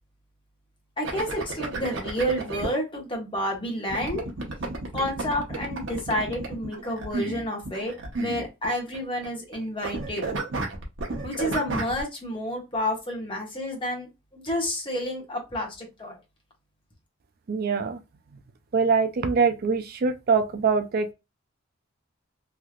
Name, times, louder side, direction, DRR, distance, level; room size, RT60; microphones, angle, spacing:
voice 1, 1.0-4.3 4.9-10.2 11.2-16.2, equal, 25° left, 1.1 m, -30 dB
sound 1, 1.0-2.7 3.9-9.0 9.2-9.6 9.8-12.0, right 3 dB, 65° right, 0.9 m, -32 dB
voice 2, 17.5-18.0 18.7-21.1, right 5 dB, 50° right, 0.4 m, -23 dB
3.2 x 2.8 x 2.4 m
head